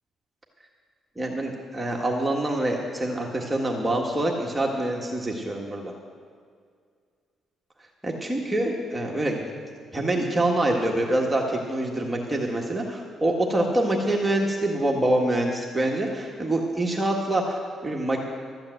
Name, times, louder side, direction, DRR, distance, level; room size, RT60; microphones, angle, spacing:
voice 1, 1.2-5.9 8.0-9.4 9.9-18.2, right 1 dB, 15° right, -1 dB, 1.6 m, -25 dB
13.5 x 8.8 x 7.9 m, 2.1 s
cardioid pair, 90°, 0 cm